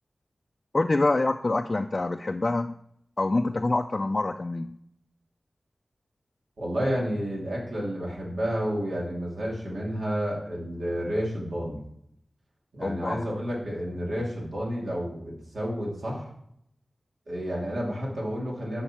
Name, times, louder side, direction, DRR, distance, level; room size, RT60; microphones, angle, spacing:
voice 1, 0.7-2.7 3.2-4.8 12.8-13.3, left 2 dB, 40° left, 6 dB, 0.3 m, -26 dB
voice 2, 6.6-11.8 12.7-16.3 17.3-18.8, equal, 85° right, -4 dB, 2.7 m, -30 dB
10.0 x 5.7 x 4.4 m, 0.74 s
wide cardioid pair, 75°, 0 cm